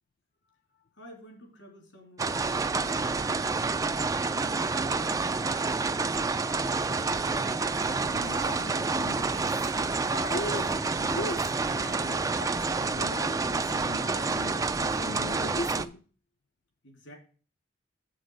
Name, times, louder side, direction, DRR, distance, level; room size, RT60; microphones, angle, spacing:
voice 1, 0.9-3.8 4.3-7.3 16.8-17.1, equal, 80° left, 3.1 m, -51 dB
sound 1, 2.2-15.9, right 4 dB, 15° right, 0.3 m, -28 dB
sound 2, 6.7-12.0, right 4 dB, 80° right, 0.9 m, -46 dB
voice 2, 8.1-16.0, left 2 dB, 50° left, 0.5 m, -39 dB
7.8 x 6.3 x 4.7 m
head